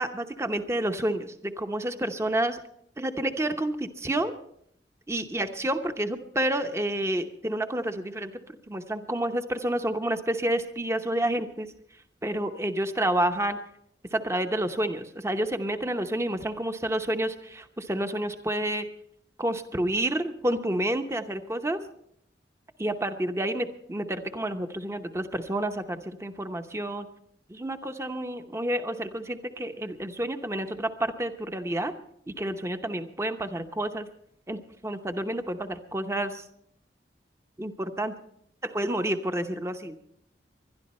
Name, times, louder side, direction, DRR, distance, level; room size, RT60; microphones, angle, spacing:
voice 1, 0.0-2.6 3.0-4.3 5.1-8.4 8.7-11.7 12.2-13.6 14.1-18.9 19.4-21.8 22.8-27.1 27.5-31.9 32.3-34.1 34.5-36.4 37.6-38.2 38.6-40.0, right 1 dB, 15° right, 8 dB, 0.9 m, -29 dB
21.0 x 12.0 x 4.3 m, 0.70 s
head